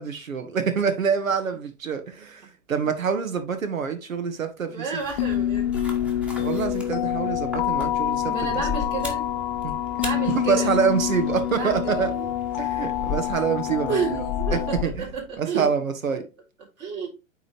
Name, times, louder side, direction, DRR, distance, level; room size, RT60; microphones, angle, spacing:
voice 1, 0.0-5.0 6.4-8.6 9.6-9.7 10.3-12.1 12.6-14.0 14.5-15.1 15.4-16.3, right 6 dB, 80° right, 1.5 m, -26 dB
voice 2, 4.7-5.7 6.2-6.5 8.1-9.3 10.0-10.7 11.5-12.3 13.8-15.7 16.1-16.2 16.8-17.1, right 5 dB, 35° right, 3.9 m, -31 dB
sound 1, 5.0-15.3, left 4 dB, 5° right, 1.3 m, -36 dB
sound 2, 5.2-14.8, left 12 dB, 35° left, 0.5 m, -27 dB
9.2 x 3.7 x 3.1 m
figure-of-eight pair, 115°, 40 cm